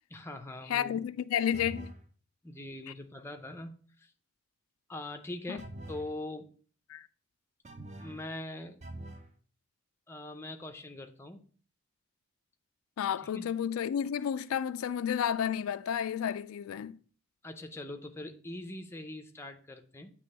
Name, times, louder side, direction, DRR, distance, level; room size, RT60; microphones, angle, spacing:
voice 1, 0.1-1.0 2.4-4.1 4.9-6.5 8.0-8.8 10.1-11.4 13.2-13.5 17.4-20.1, left 1 dB, 10° left, 0.5 m, -42 dB
voice 2, 0.7-1.9 5.5-5.6 6.9-7.1 13.0-17.0, left 9 dB, 85° left, 0.3 m, -31 dB
sound 1, 1.5-2.1 5.6-6.1 7.6-8.3 8.8-9.3, right 1 dB, 35° right, 0.6 m, -44 dB
8.4 x 3.0 x 5.3 m
head